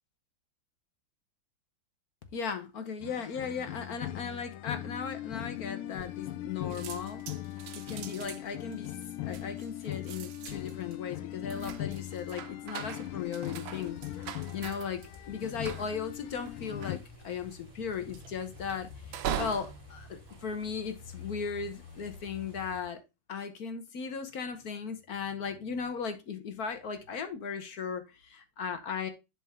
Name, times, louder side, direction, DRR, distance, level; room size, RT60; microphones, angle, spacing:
voice 1, 2.3-7.2 7.7-8.9 9.2-14.0 14.5-17.0 17.2-23.0 23.3-29.1, left 6 dB, 55° left, 1.3 m, -37 dB
sound 1, 3.0-17.0, left 14 dB, 90° left, 1.4 m, -40 dB
sound 2, 5.9-6.5 6.7-21.3 21.8-22.2, right 10 dB, 75° right, 1.5 m, -43 dB
sound 3, 13.4-22.8, left 4 dB, 15° left, 2.5 m, -50 dB
11.0 x 4.4 x 3.6 m
omnidirectional pair, 2.2 m